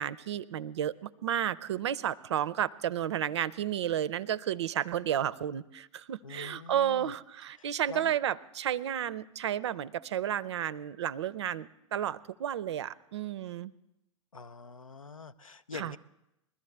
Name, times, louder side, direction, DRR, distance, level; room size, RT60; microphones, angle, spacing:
voice 1, 0.0-13.7 15.7-15.9, right 10 dB, 55° right, 20 dB, 0.5 m, -32 dB
voice 2, 6.2-7.1 7.6-8.1 14.3-16.0, left 5 dB, 80° left, 13 dB, 0.5 m, -45 dB
21.0 x 13.5 x 3.3 m, 0.87 s
figure-of-eight pair, 100°, 17 cm